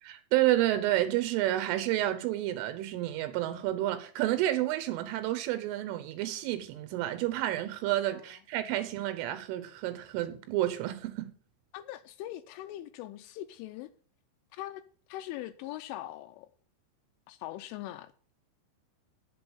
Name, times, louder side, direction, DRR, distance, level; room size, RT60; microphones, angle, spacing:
voice 1, 0.0-11.3, right 14 dB, 80° right, 3.4 m, -30 dB
voice 2, 11.7-13.9 14.5-14.8 15.1-16.5 17.3-18.1, left 14 dB, 85° left, 3.1 m, -41 dB
8.7 x 8.0 x 7.0 m
omnidirectional pair, 5.7 m